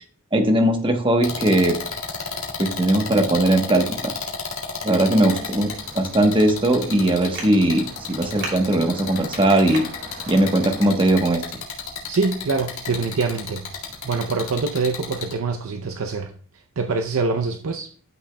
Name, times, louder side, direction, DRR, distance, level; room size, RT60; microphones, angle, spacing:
voice 1, 0.3-1.8 2.6-4.1 4.8-9.8 10.3-11.4, right 1 dB, 25° right, 1.0 m, -19 dB
sound 1, 1.2-15.3, left 5 dB, 80° left, 2.0 m, -32 dB
Traffic noise roadway noise, 5.6-10.9, right 2 dB, 55° right, 2.8 m, -38 dB
voice 2, 12.1-13.7 14.0-16.3 16.8-17.9, right 4 dB, 75° right, 0.6 m, -24 dB
12.0 x 6.2 x 2.2 m
head